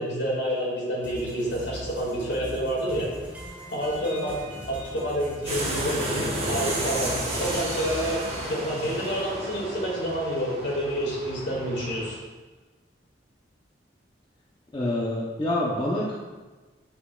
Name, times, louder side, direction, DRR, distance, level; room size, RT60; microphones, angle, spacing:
voice 1, 0.0-3.1 3.7-8.2 8.5-12.2, equal, 65° left, -4 dB, 2.0 m, -28 dB
sound 1, 1.0-8.4, equal, 10° right, 1.3 m, -40 dB
sound 2, 5.5-12.1, right 1 dB, 35° right, 1.2 m, -32 dB
voice 2, 14.7-16.1, left 1 dB, 25° left, -5 dB, 0.7 m, -26 dB
8.1 x 5.8 x 2.3 m, 1.3 s
head